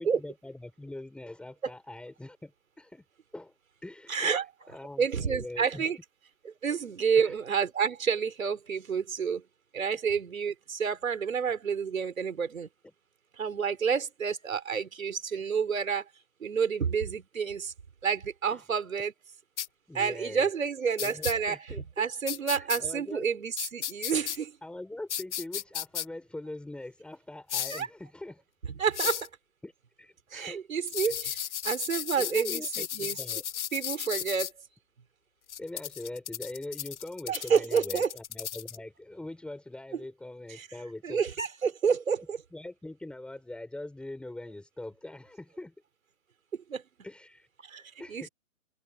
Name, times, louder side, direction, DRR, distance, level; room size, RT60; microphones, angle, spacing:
voice 1, 0.0-3.0 3.3-3.5 3.8-5.9 6.7-6.8 7.1-7.3 9.9-10.0 12.8-12.9 18.5-18.6 19.9-20.5 21.0-22.0 22.5-23.3 24.6-28.4 29.0-29.2 29.6-29.7 30.0-30.7 31.0-31.2 31.9-33.4 35.6-41.2 42.5-45.7 47.0-47.5 48.0-48.3, left 2 dB, 5° left, 6.4 m, -42 dB
voice 2, 4.1-4.4 5.0-6.0 6.4-9.4 9.7-12.7 13.4-16.0 16.4-17.7 18.0-19.1 19.9-21.6 22.0-24.6 27.7-27.9 28.8-29.3 30.3-33.2 33.7-34.5 37.3-38.1 40.6-40.7 41.0-42.4 46.7-46.8 47.6-47.8 48.1-48.3, right 6 dB, 80° right, 4.5 m, -29 dB
sound 1, 19.6-19.7 21.0-21.3 22.3-22.8 23.6-24.4 25.1-26.0 27.5-27.8 28.9-29.3 30.9-34.5 35.5-38.8, left 10 dB, 60° left, 1.9 m, -34 dB
hypercardioid pair, 145°, 40 cm